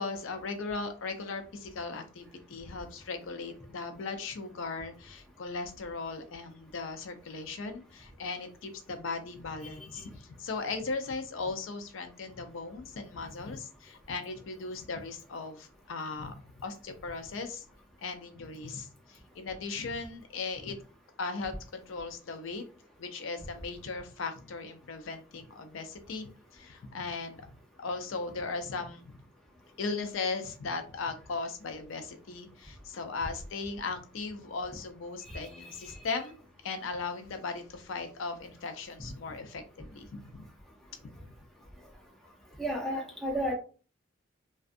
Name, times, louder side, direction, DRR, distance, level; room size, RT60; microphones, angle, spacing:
voice 1, 0.0-17.6 18.0-20.8 21.2-22.6 23.0-27.5 27.8-29.1 29.8-40.5, left 4 dB, 75° left, 7 dB, 0.4 m, -38 dB
voice 2, 35.3-35.7 42.6-43.5, equal, ahead, -2 dB, 0.6 m, -33 dB
2.4 x 2.3 x 2.5 m, 0.37 s
head